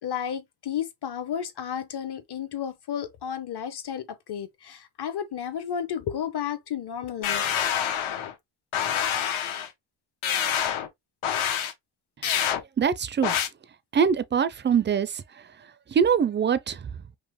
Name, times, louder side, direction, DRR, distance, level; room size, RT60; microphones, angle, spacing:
voice 1, 0.0-7.7, left 9 dB, 55° left, 0.9 m, -32 dB
sound 1, 7.2-8.3 8.7-9.7 10.2-10.9 11.2-11.7 12.2-12.6 13.2-13.5, left 9 dB, 75° left, 1.1 m, -26 dB
voice 2, 12.8-13.3 13.9-15.2 15.9-16.9, right 7 dB, 25° right, 0.3 m, -23 dB
5.3 x 2.1 x 3.1 m
cardioid pair, 110°, 48 cm